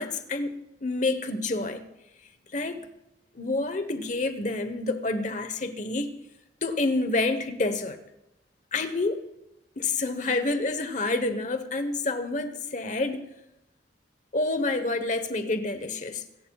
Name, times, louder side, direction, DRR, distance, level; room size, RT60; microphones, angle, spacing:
voice 1, 0.0-1.8 2.5-2.8 3.3-6.1 6.6-8.0 8.7-9.2 9.8-13.3 14.3-16.2, left 2 dB, 45° left, 9 dB, 1.1 m, -28 dB
25.0 x 14.5 x 2.4 m, 0.88 s
head